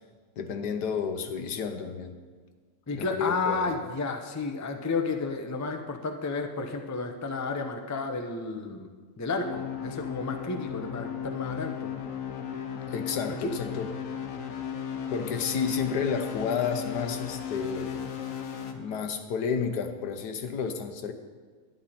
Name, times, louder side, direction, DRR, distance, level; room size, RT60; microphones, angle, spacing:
voice 1, 0.4-2.2 2.9-3.8 12.9-13.9 15.1-18.0 18.7-21.1, left 6 dB, 90° left, 7 dB, 1.5 m, -31 dB
voice 2, 2.9-11.9 13.4-13.5, left 3 dB, 25° left, 5 dB, 0.4 m, -32 dB
sound 1, 9.4-18.7, left 8 dB, 60° left, 1.2 m, -36 dB
11.0 x 10.5 x 4.3 m, 1.5 s
omnidirectional pair, 1.7 m